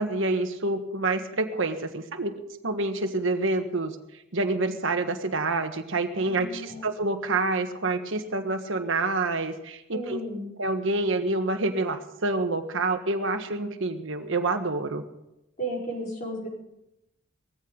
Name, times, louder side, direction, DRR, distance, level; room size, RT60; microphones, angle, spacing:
voice 1, 0.0-2.3 2.6-3.9 4.3-10.2 10.6-15.0, right 2 dB, 65° right, 6 dB, 1.4 m, -27 dB
voice 2, 6.2-6.9 9.9-10.5 15.6-16.5, right 1 dB, 40° left, -3 dB, 4.7 m, -34 dB
18.5 x 14.5 x 4.0 m, 0.86 s
head